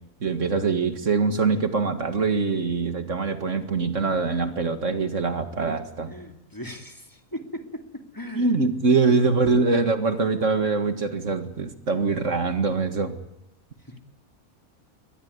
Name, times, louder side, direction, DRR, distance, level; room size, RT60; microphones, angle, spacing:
voice 1, 0.2-6.1 8.4-13.2, right 4 dB, 65° right, 8 dB, 2.2 m, -23 dB
voice 2, 6.1-8.5 9.0-9.7 13.8-14.0, left 1 dB, 15° left, 4 dB, 2.5 m, -39 dB
23.0 x 20.0 x 9.7 m, 0.85 s
omnidirectional pair, 1.4 m